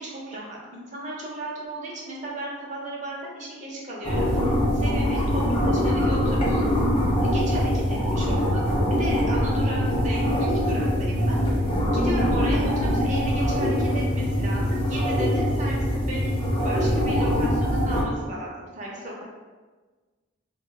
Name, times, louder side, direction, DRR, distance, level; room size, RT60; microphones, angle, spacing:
voice 1, 0.0-6.7 7.2-16.4 16.6-19.2, right 1 dB, 35° right, -4 dB, 0.5 m, -35 dB
sound 1, 4.0-18.0, equal, 25° left, 0.6 m, -23 dB
2.3 x 2.1 x 3.5 m, 1.3 s
head